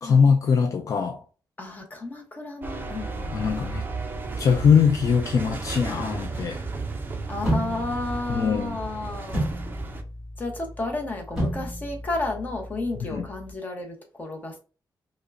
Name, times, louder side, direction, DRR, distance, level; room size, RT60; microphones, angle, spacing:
voice 1, 0.0-1.2 3.3-3.8 4.4-6.6 8.3-8.8 13.0-13.3, left 6 dB, 45° left, 0.3 m, -21 dB
voice 2, 1.6-3.6 7.3-9.5 10.4-14.6, left 2 dB, 20° left, 0.8 m, -32 dB
sound 1, 2.6-10.0, right 3 dB, 25° right, 0.4 m, -34 dB
sound 2, 7.4-13.5, right 1 dB, ahead, 1.8 m, -32 dB
4.9 x 2.1 x 2.4 m
wide cardioid pair, 180°, 8 cm